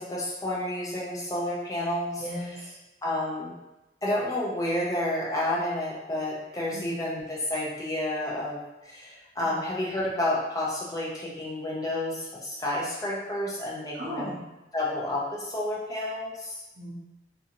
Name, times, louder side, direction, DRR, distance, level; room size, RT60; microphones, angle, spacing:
voice 1, 0.0-2.2 3.0-3.5 4.0-14.3 14.7-16.6, left 1 dB, 20° left, -5 dB, 0.6 m, -30 dB
voice 2, 2.2-2.8 6.7-7.0 9.4-9.5 13.9-14.4 16.7-16.9, equal, 60° right, -4 dB, 0.7 m, -37 dB
2.7 x 2.4 x 2.8 m, 1.0 s
head